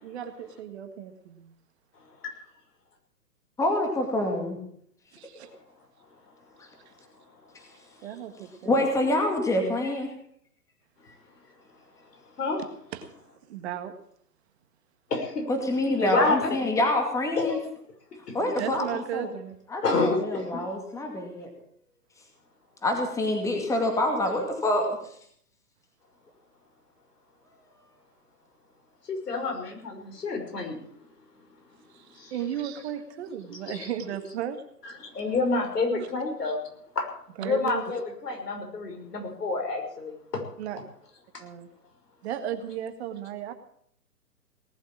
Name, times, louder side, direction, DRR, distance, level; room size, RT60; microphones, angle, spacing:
voice 1, 0.0-1.4 5.1-5.5 8.0-8.8 12.6-13.1 13.5-13.9 18.4-19.6 31.9-34.6 35.9-36.1 37.4-38.0 40.6-40.8 41.4-41.7 42.2-43.5, right 10 dB, 40° right, 8 dB, 1.8 m, -35 dB
voice 2, 3.6-4.6 8.6-10.1 15.5-17.6 18.3-18.9 19.1-19.3 19.7-21.5 22.8-25.0, left 1 dB, 5° left, 3 dB, 2.3 m, -26 dB
voice 3, 15.1-15.5 16.0-16.5 17.4-17.6 19.8-20.6 29.1-30.8 32.1-32.3 33.7-33.8 34.8-36.6 36.9-37.1 37.4-40.4, left 3 dB, 75° left, 3 dB, 6.0 m, -28 dB
18.5 x 8.2 x 8.7 m, 0.67 s
hypercardioid pair, 140°, 48 cm